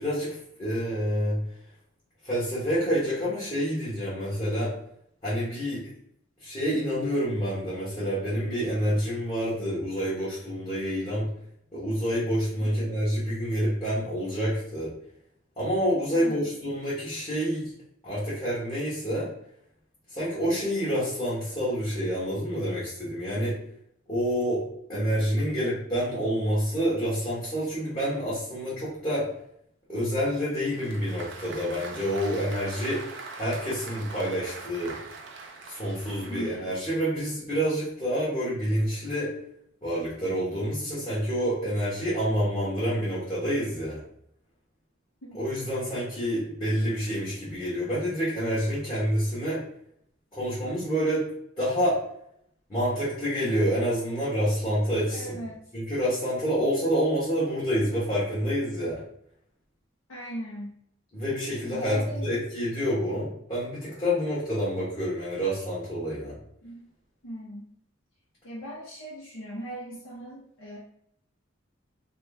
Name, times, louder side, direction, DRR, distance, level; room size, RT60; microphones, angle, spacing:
voice 1, 0.0-1.4 2.2-4.7 5.2-5.9 6.4-11.3 11.7-14.9 15.6-17.7 18.0-19.3 20.1-23.6 24.1-29.3 29.9-33.0 33.3-35.0 35.7-39.3 39.8-44.0 45.3-49.6 50.3-51.2 51.6-52.0 52.7-55.4 55.7-59.0 61.1-66.4, equal, 25° left, -11 dB, 1.2 m, -28 dB
voice 2, 12.6-12.9 16.1-16.5 32.3-32.4 36.2-36.5 45.2-45.3 55.1-55.6 60.1-60.8 61.7-62.3 66.6-66.9 67.2-67.7 68.4-70.8, right 1 dB, 75° left, -7 dB, 1.0 m, -39 dB
Applause, 30.5-36.9, right 4 dB, 65° right, 0.5 m, -43 dB
2.9 x 2.5 x 3.4 m, 0.70 s
head